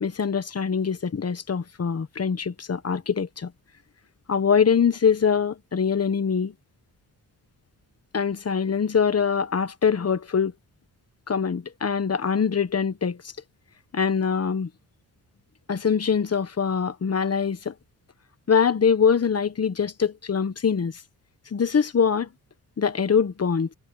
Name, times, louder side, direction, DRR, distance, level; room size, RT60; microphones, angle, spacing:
voice 1, 0.0-3.5 4.3-6.5 8.1-10.5 11.3-13.2 13.9-14.7 15.7-17.7 18.5-20.9 21.5-22.3 22.8-23.7, left 6 dB, 40° left, 1.3 m, -23 dB
cardioid pair, 85°, 38 cm